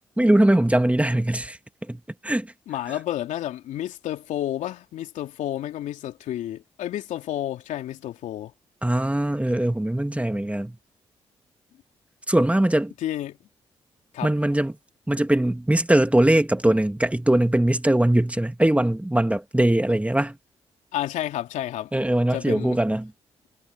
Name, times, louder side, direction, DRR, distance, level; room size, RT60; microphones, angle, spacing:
voice 1, 0.2-1.6 1.9-2.5 8.8-10.8 12.3-12.9 14.2-14.7 15.1-20.4 21.9-23.1, right 1 dB, 10° right, 2.2 m, -21 dB
voice 2, 2.7-8.5 13.0-13.4 14.1-14.3 20.9-21.9 22.3-22.8, left 12 dB, 75° left, 3.2 m, -30 dB
hypercardioid pair, 40°, 13 cm